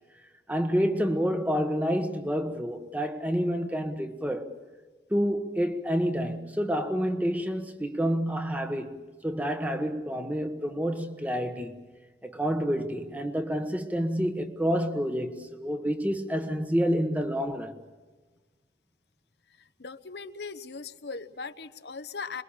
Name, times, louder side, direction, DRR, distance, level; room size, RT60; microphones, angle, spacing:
voice 1, 0.5-4.5 5.1-9.0 9.2-11.8 12.2-17.8, equal, 10° right, 1.4 m, -28 dB
voice 2, 19.6-22.4, left 4 dB, 75° left, 1.1 m, -39 dB
26.5 x 22.5 x 7.4 m
head